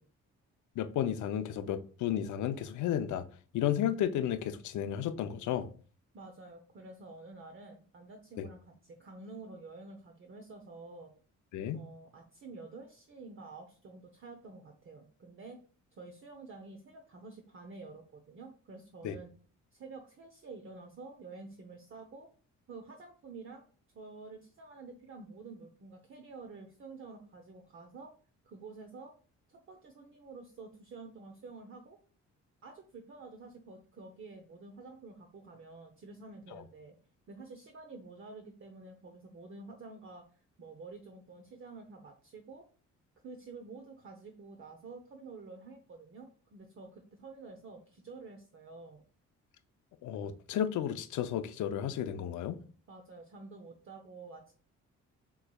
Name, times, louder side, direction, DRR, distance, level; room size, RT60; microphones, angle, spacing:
voice 1, 0.8-3.2 3.5-5.7 8.4-8.5 11.5-11.8 19.0-19.2 36.5-36.6 50.0-52.6, left 10 dB, 75° left, 0.6 m, -33 dB
voice 2, 6.1-11.1 11.7-15.6 15.9-19.3 19.7-22.3 22.7-23.6 23.9-28.1 28.4-29.1 29.5-32.0 32.6-37.0 37.3-40.2 40.6-42.6 43.2-49.0 52.9-54.5, right 3 dB, 45° right, 0.8 m, -49 dB
6.8 x 3.1 x 2.3 m
cardioid pair, 90°, 30 cm